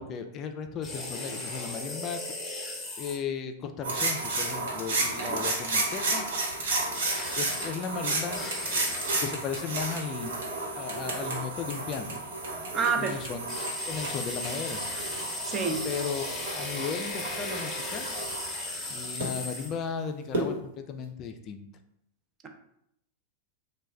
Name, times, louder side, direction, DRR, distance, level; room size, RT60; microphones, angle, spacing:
voice 1, 0.0-2.2 3.0-6.2 7.4-10.4 10.7-12.2 13.0-13.4 13.9-14.8 15.8-18.1 18.9-21.7, left 6 dB, 40° left, 7 dB, 0.3 m, -36 dB
sound 1, 0.8-3.2 6.9-7.7 8.3-9.2 13.5-19.8, left 2 dB, 20° left, 0.9 m, -36 dB
sound 2, 3.8-19.2 20.3-20.4, right 2 dB, 70° right, 1.2 m, -32 dB
voice 2, 12.7-13.1 15.4-15.8, right 5 dB, 30° right, 4 dB, 0.6 m, -28 dB
3.1 x 2.2 x 3.4 m, 0.74 s
hypercardioid pair, 95°, 0 cm